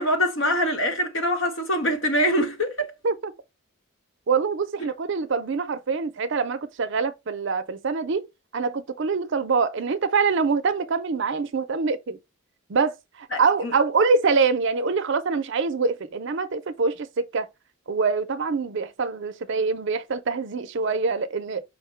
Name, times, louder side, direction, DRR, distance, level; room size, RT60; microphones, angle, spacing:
voice 1, 0.0-2.9 13.3-13.7, equal, 60° left, 1.1 m, -24 dB
voice 2, 4.3-8.3 8.5-12.2 12.7-17.5 17.9-21.6, right 4 dB, 55° right, 0.5 m, -25 dB
5.2 x 2.1 x 4.4 m
head